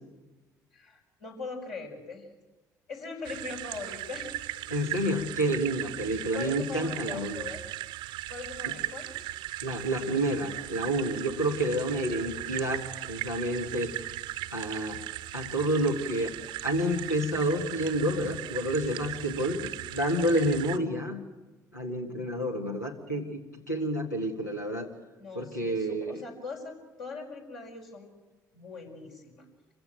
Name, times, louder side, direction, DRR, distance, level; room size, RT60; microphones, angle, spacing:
voice 1, 0.7-2.3 2.9-4.7 6.3-7.6 8.3-9.1 25.2-28.1 28.5-29.4, left 4 dB, 65° left, -1 dB, 5.6 m, -41 dB
sound 1, 3.2-20.8, right 15 dB, 60° right, 0.7 m, -38 dB
voice 2, 4.7-7.4 9.6-13.9 14.5-15.0 15.3-16.3 16.6-21.2 21.7-23.4 23.7-24.9 25.3-26.2, right 1 dB, 90° left, 1 dB, 2.0 m, -29 dB
26.0 x 16.0 x 9.1 m, 1.2 s
figure-of-eight pair, 50°, 9 cm